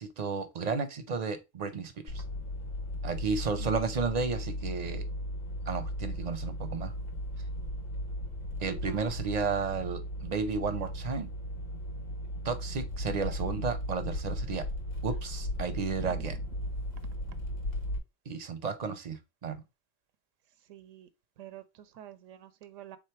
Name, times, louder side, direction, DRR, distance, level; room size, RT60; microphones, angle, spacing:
voice 1, 0.0-2.2 3.0-5.1 5.7-6.9 8.6-11.3 12.4-14.6 15.0-16.3 18.3-19.6, right 5 dB, 45° right, 0.6 m, -33 dB
sound 1, 2.1-18.0, left 1 dB, 85° left, 1.4 m, -36 dB
voice 2, 8.8-9.1 16.0-16.3 20.7-21.1 21.4-23.0, right 10 dB, 85° right, 0.9 m, -47 dB
3.6 x 3.3 x 4.3 m
omnidirectional pair, 1.3 m